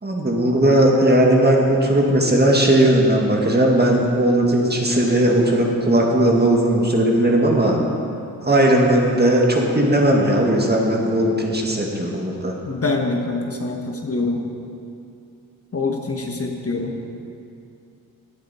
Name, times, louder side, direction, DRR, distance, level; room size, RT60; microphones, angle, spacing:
voice 1, 0.0-7.8 8.4-12.6, right 1 dB, 25° right, -1 dB, 1.9 m, -17 dB
voice 2, 12.6-14.4 15.7-17.0, left 3 dB, 40° left, 2 dB, 1.2 m, -25 dB
15.5 x 8.4 x 4.3 m, 2.6 s
cardioid pair, 65°, 37 cm